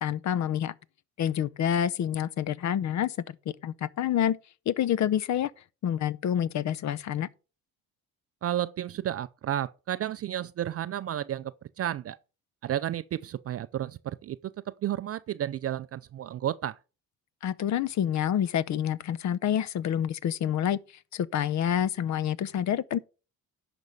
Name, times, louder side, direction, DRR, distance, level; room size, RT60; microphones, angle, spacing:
voice 1, 0.0-0.7 1.2-4.4 4.7-5.5 5.8-7.3 17.4-20.8 21.1-23.0, left 10 dB, 50° left, 0.7 m, -28 dB
voice 2, 8.4-12.2 12.6-14.4 14.7-16.8, right 11 dB, 40° right, 0.4 m, -32 dB
10.5 x 6.1 x 5.3 m
cardioid pair, 125°, 37 cm